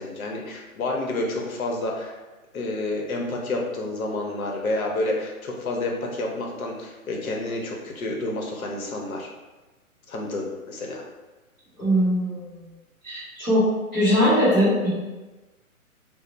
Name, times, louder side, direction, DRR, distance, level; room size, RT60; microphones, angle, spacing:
voice 1, 0.0-2.2 2.5-9.3 10.1-11.0, left 2 dB, 75° left, 0 dB, 0.7 m, -29 dB
voice 2, 11.8-12.7 13.0-13.6 13.9-15.0, equal, 10° right, -17 dB, 0.4 m, -21 dB
2.1 x 2.0 x 3.7 m, 1.2 s
hypercardioid pair, 135°, 43 cm